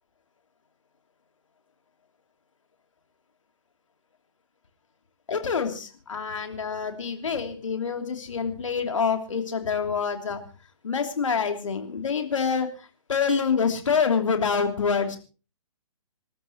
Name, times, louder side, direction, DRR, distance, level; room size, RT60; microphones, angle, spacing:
voice 1, 5.3-10.4 10.8-12.7 13.1-15.2, left 6 dB, 60° left, 5 dB, 3.1 m, -26 dB
27.0 x 13.0 x 3.1 m, 0.36 s
figure-of-eight pair, 125°, 18 cm